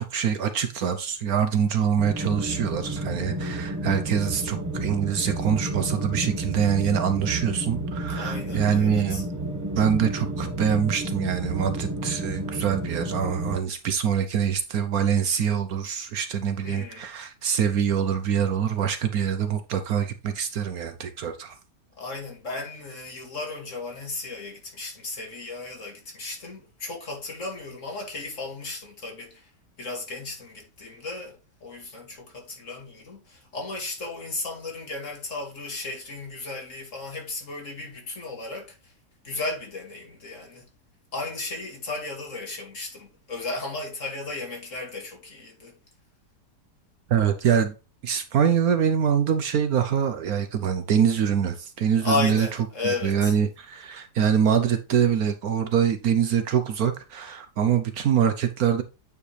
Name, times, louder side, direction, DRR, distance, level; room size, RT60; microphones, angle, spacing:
voice 1, 0.0-9.3 9.8-21.6 47.1-47.7 48.0-52.5 53.0-58.8, right 8 dB, 65° right, 1.1 m, -24 dB
sound 1, 2.0-13.6, right 1 dB, 10° right, 1.0 m, -31 dB
voice 2, 8.1-9.2 16.6-17.1 22.0-29.5 29.8-38.9 39.2-40.7 41.1-45.8 52.0-53.3, left 3 dB, 45° left, 2.4 m, -34 dB
9.0 x 4.8 x 3.2 m
omnidirectional pair, 1.8 m